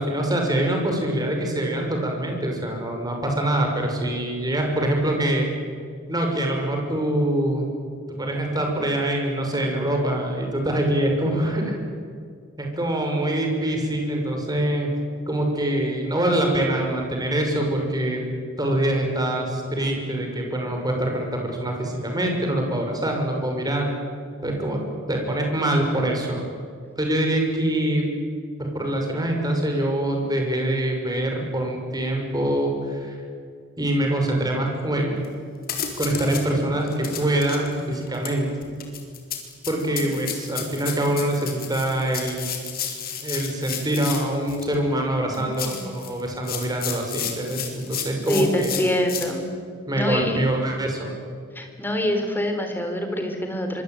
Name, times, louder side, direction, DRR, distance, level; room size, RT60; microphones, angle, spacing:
voice 1, 0.0-5.5 6.1-7.7 8.1-11.7 12.6-14.9 15.3-18.2 18.6-23.9 24.4-24.8 25.1-26.4 27.0-28.0 28.6-33.2 33.8-35.2 36.0-38.8 39.7-42.4 43.2-48.7 49.9-51.1, right 1 dB, 20° right, 2 dB, 6.1 m, -24 dB
sound 1, 35.2-35.3 35.6-36.5 36.9-44.7 45.3-49.3, left 8 dB, 45° left, 4.3 m, -32 dB
voice 2, 48.3-49.5 49.9-50.5 51.6-53.8, left 1 dB, 10° left, 5 dB, 4.1 m, -25 dB
25.0 x 24.5 x 9.4 m, 2.1 s
head